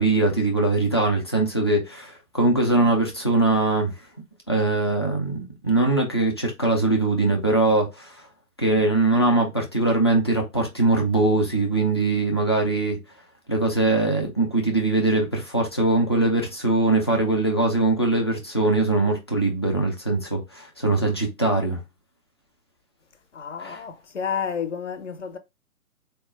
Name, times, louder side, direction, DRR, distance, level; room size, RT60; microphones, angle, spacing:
voice 1, 0.0-3.9 4.5-8.2 8.6-13.0 13.5-21.8 23.6-23.8, right 2 dB, 20° left, 0.4 m, -22 dB
voice 2, 23.3-25.4, left 7 dB, 50° left, 0.7 m, -30 dB
4.3 x 2.2 x 3.0 m
figure-of-eight pair, 135°, 46 cm